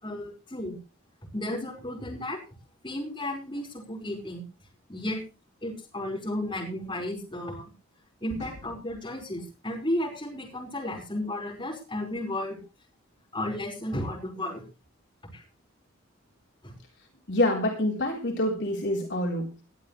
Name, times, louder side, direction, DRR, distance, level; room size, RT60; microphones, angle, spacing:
voice 1, 0.0-0.8 1.3-2.4 2.8-4.4 4.9-5.2 5.6-7.7 8.2-12.6 13.3-14.6 15.3-15.4 16.6-16.7, left 1 dB, 25° left, -2 dB, 5.1 m, -33 dB
voice 2, 17.3-19.6, left 1 dB, 55° left, 0 dB, 3.8 m, -26 dB
21.0 x 11.0 x 3.3 m, 0.32 s
head